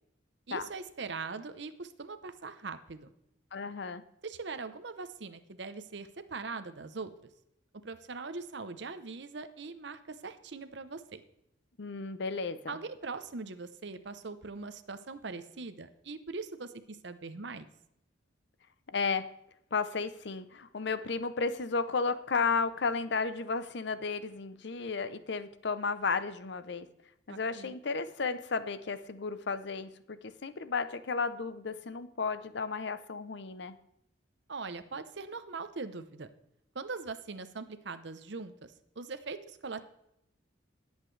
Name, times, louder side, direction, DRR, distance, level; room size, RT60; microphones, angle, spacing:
voice 1, 0.5-3.1 4.2-7.1 7.8-11.2 12.7-17.7 27.3-27.7 34.5-36.3 36.7-38.5 39.0-39.8, right 4 dB, 60° right, 11 dB, 0.8 m, -41 dB
voice 2, 3.5-4.0 11.8-12.8 18.9-19.3 19.7-26.9 27.3-33.8, left 4 dB, 60° left, 13 dB, 0.7 m, -33 dB
20.0 x 8.2 x 3.3 m, 0.80 s
head